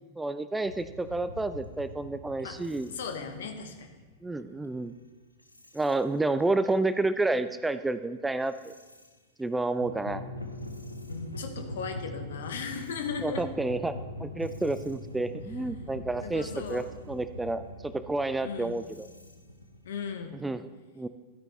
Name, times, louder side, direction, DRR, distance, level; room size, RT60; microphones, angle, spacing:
voice 1, 0.2-2.9 4.2-4.9 5.7-8.7 9.4-10.2 13.2-19.1 20.3-20.7 21.0-21.1, right 2 dB, 10° right, 12 dB, 0.4 m, -30 dB
sound 1, 0.6-4.9 5.4-6.0 6.4-6.8 7.2-9.1 9.6-20.4, left 1 dB, 85° left, 0.8 m, -43 dB
voice 2, 2.9-3.9 11.1-13.4 16.2-16.9 18.4-18.8 19.8-20.4, left 5 dB, 60° left, 6 dB, 1.2 m, -37 dB
12.5 x 8.8 x 3.3 m, 1.3 s
figure-of-eight pair, 90°, 0 cm